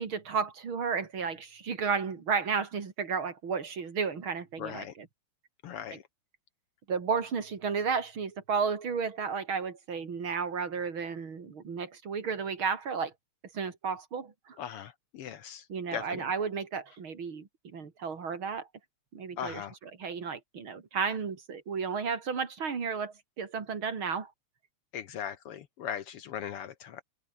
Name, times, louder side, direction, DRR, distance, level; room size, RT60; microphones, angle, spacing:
voice 1, 0.0-5.1 5.9-6.0 6.9-13.1 13.5-14.6 15.7-18.7 19.1-24.3, right 5 dB, 45° right, 3.2 m, -33 dB
voice 2, 4.6-4.9 5.6-6.0 14.6-15.7 15.9-16.2 19.4-19.8 24.9-27.0, left 9 dB, 65° left, 1.7 m, -39 dB
open air
omnidirectional pair, 3.3 m